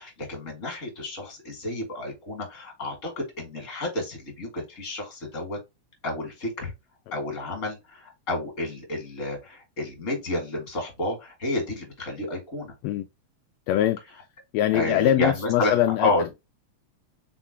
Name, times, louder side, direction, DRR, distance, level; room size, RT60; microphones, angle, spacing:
voice 1, 0.0-5.6 6.0-6.7 7.1-12.7 14.7-16.3, left 2 dB, 30° left, 2.1 m, -30 dB
voice 2, 13.7-14.0 14.5-16.1, left 12 dB, 80° left, 1.6 m, -22 dB
4.4 x 4.0 x 2.8 m
omnidirectional pair, 3.3 m